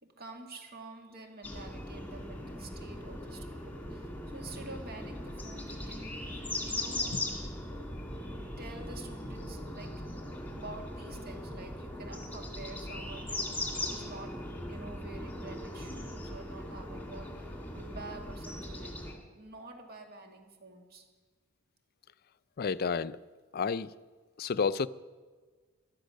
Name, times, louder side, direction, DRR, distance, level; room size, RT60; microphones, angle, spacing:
voice 1, 0.0-7.2 7.6-9.9 10.5-14.4 14.7-21.1, right 3 dB, 45° right, 2.1 m, -48 dB
sound 1, 1.4-19.1, left 1 dB, 10° left, 2.1 m, -39 dB
voice 2, 22.6-23.2 23.5-23.9 24.4-24.9, left 5 dB, 45° left, 0.4 m, -30 dB
14.5 x 12.0 x 6.4 m
head